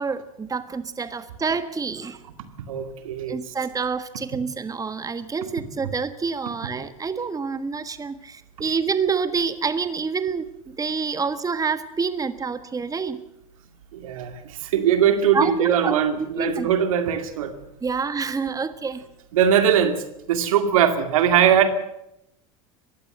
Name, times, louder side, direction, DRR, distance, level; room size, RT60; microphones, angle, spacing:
voice 1, 0.0-2.2 3.3-13.2 15.3-15.9 16.4-16.7 17.8-19.0, right 5 dB, 20° right, 12 dB, 1.4 m, -27 dB
voice 2, 2.7-3.5 13.9-17.5 19.3-21.7, right 8 dB, 75° right, 9 dB, 2.3 m, -21 dB
22.0 x 15.5 x 7.8 m, 0.82 s
hypercardioid pair, 80°, 18 cm